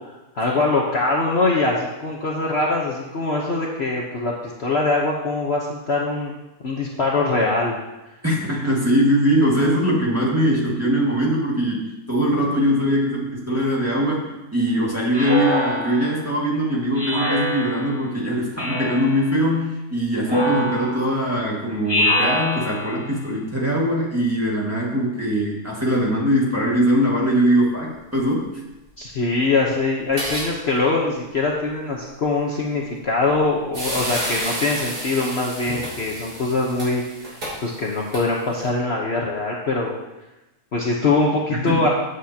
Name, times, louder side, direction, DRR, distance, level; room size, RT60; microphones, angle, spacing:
voice 1, 0.3-6.3 6.6-7.8 29.0-37.0 37.6-39.9 40.7-41.9, left 3 dB, 45° left, -2 dB, 1.2 m, -22 dB
voice 2, 8.2-28.5 41.5-41.9, equal, 10° right, -5 dB, 2.0 m, -21 dB
Speech synthesizer, 15.1-16.2 17.0-18.0 18.6-19.2 20.3-21.2 21.9-23.0, left 1 dB, 15° left, 1.4 m, -24 dB
sound 1, 30.0-30.5 30.8-30.9 33.2-33.4 33.7-38.7, right 1 dB, 80° right, 3.7 m, -31 dB
14.0 x 8.2 x 2.9 m, 1.0 s
omnidirectional pair, 1.7 m